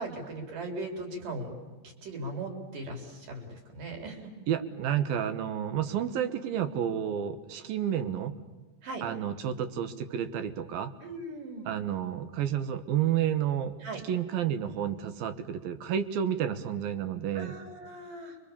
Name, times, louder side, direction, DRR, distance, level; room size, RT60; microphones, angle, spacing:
voice 1, 0.0-1.5 2.0-4.3 8.8-9.0 11.0-11.7 13.8-14.1 17.3-18.4, right 2 dB, 65° right, 3 dB, 5.3 m, -38 dB
voice 2, 4.5-8.4 9.0-10.9 11.7-13.7 14.1-17.5, right 9 dB, 80° right, 9 dB, 3.1 m, -30 dB
29.0 x 24.0 x 7.0 m, 1.2 s
omnidirectional pair, 4.1 m